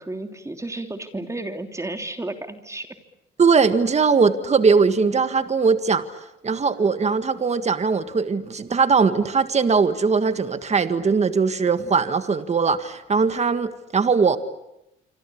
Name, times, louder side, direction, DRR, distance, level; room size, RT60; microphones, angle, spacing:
voice 1, 0.0-2.9, right 2 dB, 15° right, 5 dB, 3.2 m, -32 dB
voice 2, 3.4-6.0 6.4-14.4, right 5 dB, 35° right, 10 dB, 1.8 m, -20 dB
26.5 x 26.0 x 8.6 m, 0.87 s
cardioid pair, 90°, 20 cm